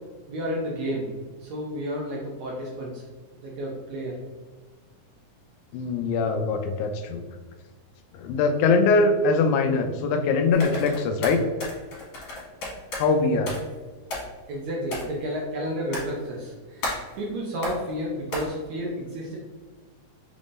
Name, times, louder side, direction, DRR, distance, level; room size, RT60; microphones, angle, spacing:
voice 1, 0.3-1.1 1.4-3.0 3.4-4.1 14.5-16.9 17.2-19.4, equal, 75° right, -3 dB, 1.7 m, -31 dB
voice 2, 5.7-7.2 8.1-11.4 12.9-13.5, left 4 dB, 80° left, 6 dB, 1.7 m, -22 dB
sound 1, 10.5-13.1 13.5-13.7 14.1-14.5 14.9-15.1 15.9-16.3 16.8-17.1 17.6-17.9 18.3-18.5, left 1 dB, 60° left, 2.6 m, -33 dB
6.0 x 3.5 x 2.5 m, 1.4 s
omnidirectional pair, 3.8 m